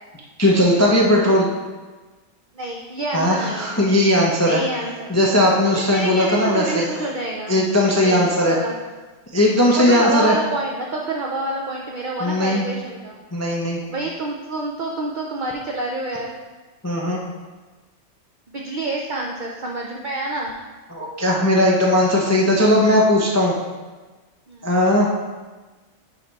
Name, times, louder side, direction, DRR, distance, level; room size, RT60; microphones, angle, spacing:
voice 1, 0.4-1.5 3.1-4.6 5.1-7.0 7.5-8.6 9.3-10.4 12.2-12.7 13.3-13.8 16.8-17.2 20.9-23.5 24.6-25.1, left 1 dB, 20° left, -3 dB, 0.5 m, -18 dB
voice 2, 2.5-3.7 4.4-5.1 5.9-7.6 8.0-8.7 9.8-13.2 13.8-16.4 18.5-20.5 24.5-24.7, right 2 dB, 55° right, -1 dB, 0.5 m, -27 dB
9.9 x 3.4 x 4.0 m, 1.3 s
omnidirectional pair, 1.5 m